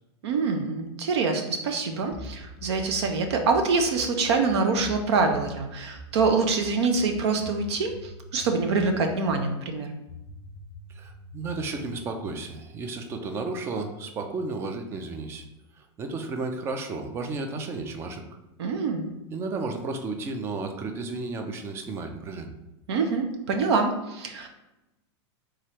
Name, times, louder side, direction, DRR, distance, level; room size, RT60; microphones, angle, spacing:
voice 1, 0.2-9.9 18.6-19.1 22.9-24.5, right 4 dB, 70° right, 5 dB, 0.8 m, -25 dB
sound 1, 2.1-9.4 10.1-12.6, left 2 dB, 20° left, 0.7 m, -44 dB
voice 2, 10.9-15.4 16.0-18.2 19.3-22.5, right 3 dB, 15° right, 6 dB, 0.4 m, -33 dB
3.7 x 3.1 x 4.4 m, 0.96 s
supercardioid pair, 155°, 14 cm